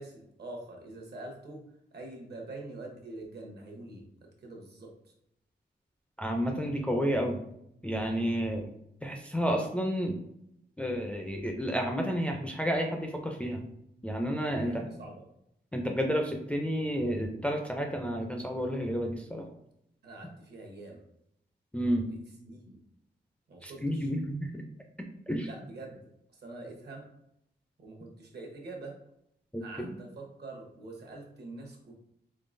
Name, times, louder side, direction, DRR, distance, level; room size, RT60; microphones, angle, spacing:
voice 1, 0.0-1.6 1.9-5.1 14.6-15.2 20.0-21.0 22.1-22.8 23.5-24.1 25.4-26.0 26.3-27.0 27.8-28.9 29.6-31.9, right 2 dB, 65° right, 1 dB, 0.9 m, -45 dB
voice 2, 6.2-7.4 7.8-8.7 9.0-10.1 10.8-13.6 14.0-14.9 15.7-19.5 21.7-22.1 23.6-24.4 25.3-25.5 29.5-30.0, equal, 5° left, 2 dB, 0.3 m, -31 dB
3.7 x 3.6 x 2.5 m, 0.78 s
wide cardioid pair, 165°, 18 cm